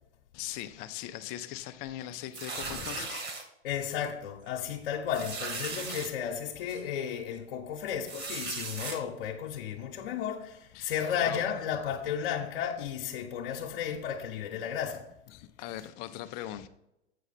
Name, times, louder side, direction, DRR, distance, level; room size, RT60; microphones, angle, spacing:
voice 1, 0.3-3.3 10.7-11.5 15.3-16.7, left 13 dB, 30° left, 0.4 m, -40 dB
sound 1, 2.3-3.4 4.0-4.2 4.5-4.6 5.1-6.1 6.7-6.8 8.0-9.0, right 4 dB, 30° right, 1.6 m, -37 dB
voice 2, 3.6-15.1, left 8 dB, 55° left, 1.0 m, -33 dB
8.2 x 4.9 x 4.1 m
figure-of-eight pair, 100°, 34 cm